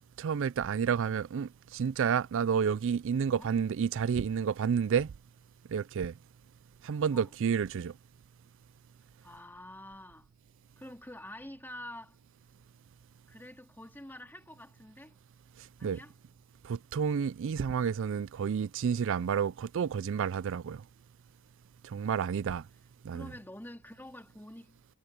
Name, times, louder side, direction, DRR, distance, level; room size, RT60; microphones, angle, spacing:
voice 1, 0.2-5.1 5.7-6.1 6.8-7.9 15.8-16.0 16.6-20.8 21.8-22.6 23.0-23.3, right 7 dB, 60° right, 0.4 m, -30 dB
voice 2, 9.2-10.3 10.8-12.2 13.3-15.1 15.8-16.1 19.8-19.9 23.1-24.8, left 1 dB, 10° left, 2.6 m, -47 dB
head